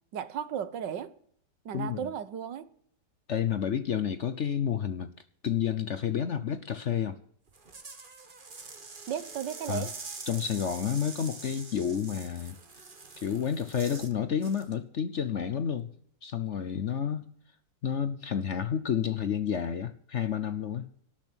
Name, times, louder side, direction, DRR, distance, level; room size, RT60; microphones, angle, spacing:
voice 1, 0.1-1.1 1.7-2.7 9.1-9.9, right 9 dB, 80° right, 1.7 m, -35 dB
voice 2, 1.7-2.1 3.3-5.1 5.4-7.2 9.7-9.9 10.3-12.6 13.2-15.9 16.2-17.3 17.8-20.9, left 8 dB, 55° left, 0.9 m, -30 dB
sound 1, 7.5-14.1 14.4-14.7, right 4 dB, 30° right, 1.4 m, -45 dB
18.0 x 6.3 x 8.9 m
omnidirectional pair, 1.9 m